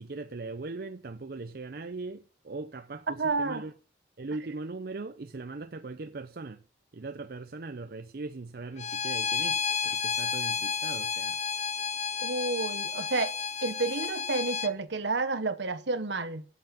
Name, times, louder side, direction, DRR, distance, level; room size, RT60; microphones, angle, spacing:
voice 1, 0.0-3.7 4.2-6.6 6.9-11.4, right 3 dB, 55° right, 0.6 m, -39 dB
voice 2, 3.1-3.7 12.2-13.3 13.6-16.4, right 3 dB, 70° right, 1.2 m, -30 dB
Bowed string instrument, 8.8-14.7, left 6 dB, 40° left, 0.6 m, -31 dB
8.9 x 7.9 x 9.0 m
head